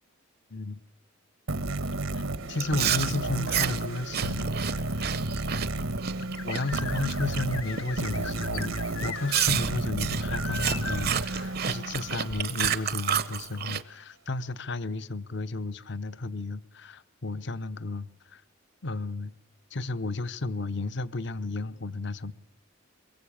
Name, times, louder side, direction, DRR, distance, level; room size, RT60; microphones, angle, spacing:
sound 1, 1.5-12.6, right 2 dB, 80° right, 1.3 m, -32 dB
voice 1, 2.5-5.1 6.2-8.8 9.0-18.4 18.8-19.3 19.7-22.3, left 3 dB, 55° left, 0.8 m, -33 dB
Chewing mastication, 2.6-7.4 7.8-8.1 8.6-8.7 9.3-13.8, right 9 dB, 45° right, 0.8 m, -30 dB
Bird Water Whistle, 6.2-9.5 9.9-10.0 10.3-11.1, left 6 dB, 80° left, 1.3 m, -38 dB
23.0 x 21.0 x 8.6 m
head